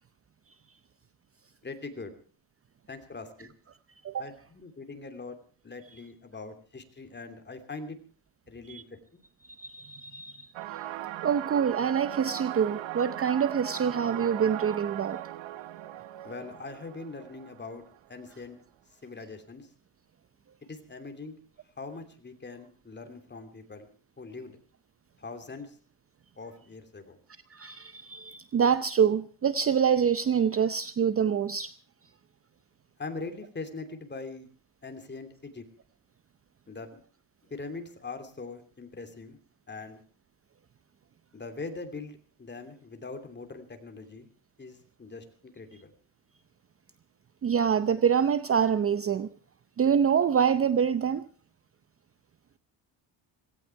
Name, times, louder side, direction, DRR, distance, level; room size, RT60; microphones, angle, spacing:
voice 1, 1.6-2.1 2.9-3.5 4.2-5.4 5.6-8.0 8.5-9.2 16.2-18.6 19.0-19.7 20.6-21.4 21.8-23.9 24.2-24.6 25.2-25.8 26.4-27.2 33.0-34.5 34.8-35.7 36.7-37.0 37.5-39.4 39.7-40.0 41.3-44.3 44.6-45.9, left 3 dB, 20° left, 2.9 m, -42 dB
voice 2, 9.6-10.5 11.2-15.2 27.5-31.7 47.4-49.3 49.8-51.2, right 7 dB, 30° right, 0.7 m, -26 dB
sound 1, 10.5-18.1, right 13 dB, 75° right, 1.3 m, -39 dB
17.5 x 17.0 x 4.6 m
cardioid pair, 115°, 47 cm